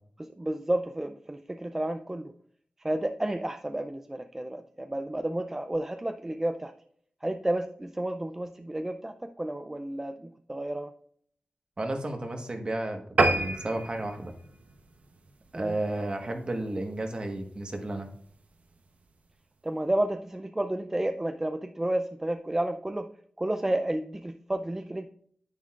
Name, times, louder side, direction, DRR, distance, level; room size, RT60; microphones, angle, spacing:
voice 1, 0.2-2.3 2.8-6.7 7.2-10.9 15.5-15.8 19.6-23.1 23.4-25.1, right 1 dB, 15° right, 7 dB, 0.4 m, -31 dB
voice 2, 11.8-14.3 15.5-18.1, right 1 dB, 40° right, 4 dB, 1.3 m, -33 dB
sound 1, 13.2-15.9 16.4-16.6 17.0-17.1 17.4-17.5 17.8-17.9, right 2 dB, 65° right, 0.9 m, -28 dB
9.9 x 9.5 x 2.4 m, 0.62 s
wide cardioid pair, 100°, 3 cm